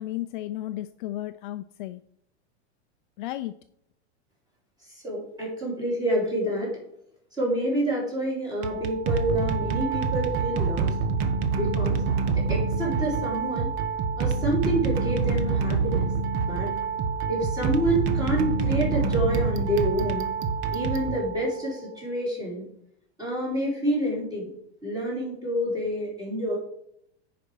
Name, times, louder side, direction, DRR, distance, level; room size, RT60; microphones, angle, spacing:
voice 1, 0.0-2.0 3.2-3.5, left 14 dB, 50° left, 10 dB, 0.4 m, -33 dB
voice 2, 4.9-6.7 7.3-10.9 11.5-12.0 12.5-13.7 14.2-16.1 16.5-16.7 17.3-20.3 20.7-22.6 23.2-24.5 24.8-26.6, right 1 dB, 10° right, -4 dB, 3.5 m, -28 dB
sound 1, 8.5-21.7, right 5 dB, 35° right, 0.8 m, -26 dB
9.7 x 5.1 x 4.6 m, 0.71 s
supercardioid pair, 160°, 34 cm